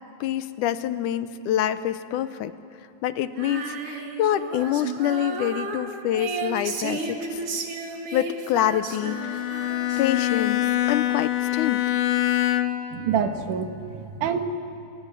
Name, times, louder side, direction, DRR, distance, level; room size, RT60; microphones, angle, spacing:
voice 1, 0.2-2.5 3.0-7.4 8.1-9.6 10.0-11.8, left 11 dB, 80° left, 13 dB, 2.3 m, -26 dB
Female singing, 3.3-10.7, right 3 dB, 50° right, 2.7 m, -33 dB
Bowed string instrument, 8.9-13.0, left 14 dB, 60° left, 1.4 m, -24 dB
voice 2, 12.9-14.4, right 7 dB, 80° right, 7 dB, 2.9 m, -27 dB
29.0 x 18.5 x 9.7 m, 2.8 s
omnidirectional pair, 3.6 m